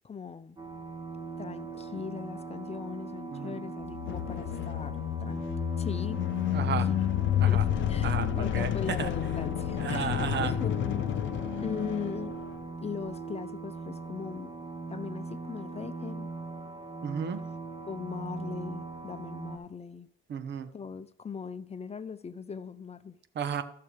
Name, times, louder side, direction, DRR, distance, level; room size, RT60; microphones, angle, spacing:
voice 1, 0.0-0.6 1.4-5.5 5.8-6.2 6.5-7.0 7.5-10.2 10.4-11.1 11.6-12.4 12.8-14.5 14.9-16.3 17.8-20.1 20.7-23.2, left 6 dB, 30° left, 0.7 m, -40 dB
sound 1, 0.6-19.6, right 3 dB, 25° right, 1.7 m, -40 dB
voice 2, 3.3-3.6 6.5-6.9 7.4-7.7 8.0-9.1 9.8-10.5 17.0-17.4 20.3-20.7 23.3-23.6, right 7 dB, 60° right, 1.1 m, -33 dB
sound 2, 3.8-12.6, left 11 dB, 70° left, 0.6 m, -30 dB
14.5 x 6.6 x 3.4 m
cardioid pair, 90°, 20 cm